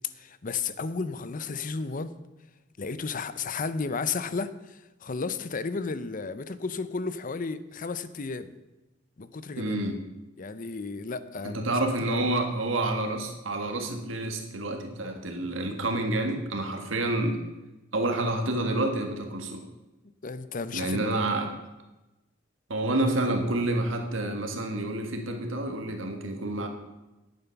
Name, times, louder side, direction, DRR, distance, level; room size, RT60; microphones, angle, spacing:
voice 1, 0.2-2.1 2.8-8.5 9.2-9.8 10.4-12.3 20.2-21.1, left 4 dB, 45° left, 14 dB, 0.6 m, -33 dB
voice 2, 9.6-10.0 11.4-17.4 17.9-19.6 20.7-21.5 22.7-26.7, right 2 dB, 85° right, 4 dB, 1.7 m, -28 dB
11.0 x 9.0 x 5.9 m, 1.0 s
head